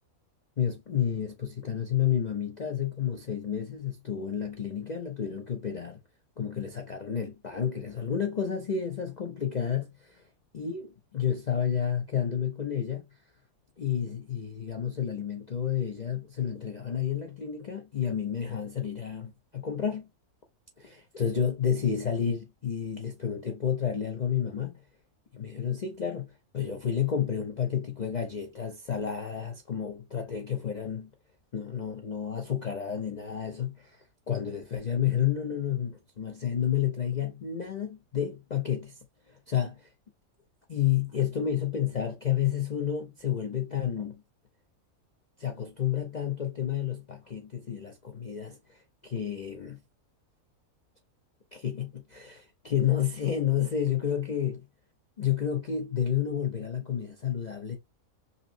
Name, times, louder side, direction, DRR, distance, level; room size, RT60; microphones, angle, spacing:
voice 1, 0.6-6.0 6.4-10.2 10.5-13.0 13.8-20.1 20.8-24.7 25.3-31.1 31.5-39.0 39.3-39.9 40.7-44.2 45.4-49.8 51.5-54.7 55.2-57.8, left 9 dB, 60° left, 0.4 m, -30 dB
5.3 x 2.0 x 2.5 m
omnidirectional pair, 1.6 m